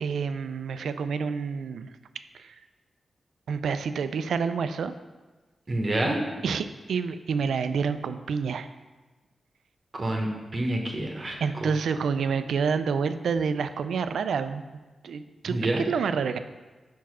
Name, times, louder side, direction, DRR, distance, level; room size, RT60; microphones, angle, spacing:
voice 1, 0.0-1.9 2.3-2.6 3.5-4.9 6.4-8.7 11.4-14.6 15.0-16.4, right 6 dB, 90° right, 11 dB, 0.3 m, -28 dB
voice 2, 5.7-6.2 9.9-11.4 15.5-15.8, right 1 dB, 40° right, 1 dB, 1.0 m, -27 dB
4.7 x 4.6 x 6.0 m, 1.2 s
cardioid pair, 75°, 0 cm